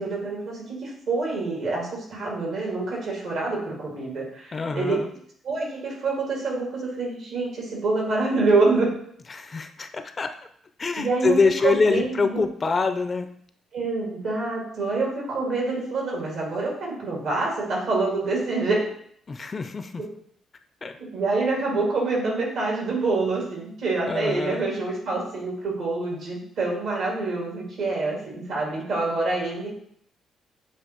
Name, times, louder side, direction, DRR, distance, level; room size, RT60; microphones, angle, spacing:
voice 1, 0.0-5.0 5.4-8.9 11.0-11.4 11.6-12.4 13.7-18.8 21.0-29.7, right 3 dB, 75° right, -3 dB, 2.0 m, -26 dB
voice 2, 4.5-5.1 9.3-10.4 10.8-13.3 19.3-19.9 20.8-21.0 24.1-24.7, left 4 dB, 35° left, 8 dB, 0.4 m, -25 dB
7.1 x 2.5 x 3.0 m, 0.64 s
cardioid pair, 90°, 0 cm